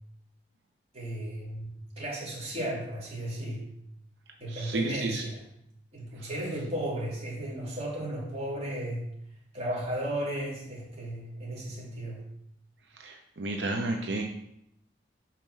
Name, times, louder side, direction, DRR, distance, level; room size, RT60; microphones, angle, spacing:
voice 1, 0.9-3.6 4.4-5.4 5.9-9.1 9.5-12.2, right 1 dB, 35° right, -5 dB, 2.5 m, -34 dB
voice 2, 4.5-5.2 13.0-14.2, right 2 dB, 80° right, 3 dB, 0.7 m, -31 dB
5.4 x 4.4 x 6.0 m, 0.76 s
head